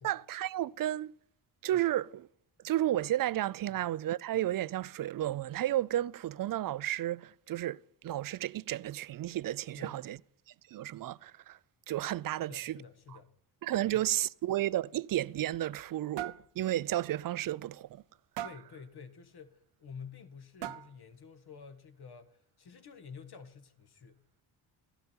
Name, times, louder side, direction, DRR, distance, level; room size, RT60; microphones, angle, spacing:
voice 1, 0.0-1.1 1.6-2.3 2.6-10.2 10.7-11.6 11.9-12.8 13.6-18.0, right 13 dB, 45° right, 0.5 m, -32 dB
voice 2, 12.4-13.3 13.8-14.0 18.4-24.2, left 6 dB, 50° left, 1.5 m, -50 dB
sound 1, 15.3-15.9 16.2-16.5 16.9-17.1 17.4-17.5 18.4-18.7 19.9-20.0 20.6-21.1, right 12 dB, 60° right, 0.8 m, -40 dB
13.0 x 12.0 x 4.4 m
supercardioid pair, 60°, 48 cm